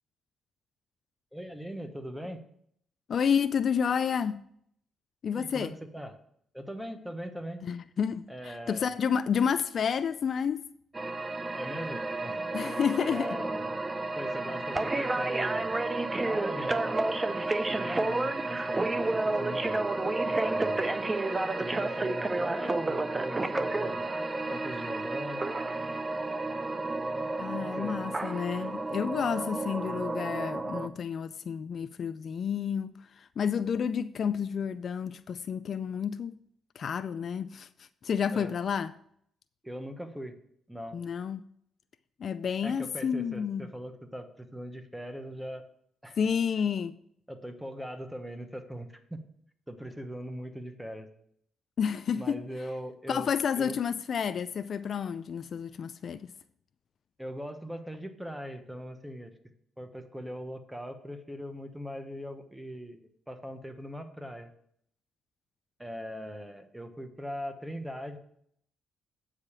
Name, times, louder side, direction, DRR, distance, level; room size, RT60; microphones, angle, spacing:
voice 1, 1.3-2.4 5.3-6.2 6.5-7.7 8.3-8.9 11.5-12.4 13.0-13.9 14.2-15.7 16.2-17.2 17.7-19.8 20.3-21.0 21.6-24.0 24.5-25.4 27.6-28.0 38.3-38.5 39.6-40.4 40.7-41.0 42.6-45.6 46.0-46.2 47.3-49.2 49.7-51.1 52.1-53.3 53.6-53.8 57.2-59.3 59.8-63.0 63.3-64.5 65.8-68.2, equal, 5° right, 1.2 m, -40 dB
voice 2, 3.1-4.4 5.2-5.7 7.6-10.6 12.5-13.4 27.4-36.4 36.8-38.9 40.9-41.4 42.2-43.7 46.2-46.9 51.8-52.4 53.1-56.3, left 7 dB, 55° left, 0.4 m, -30 dB
sound 1, 10.9-30.9, right 2 dB, 20° right, 0.6 m, -31 dB
8.3 x 4.9 x 7.3 m
cardioid pair, 90°, 0 cm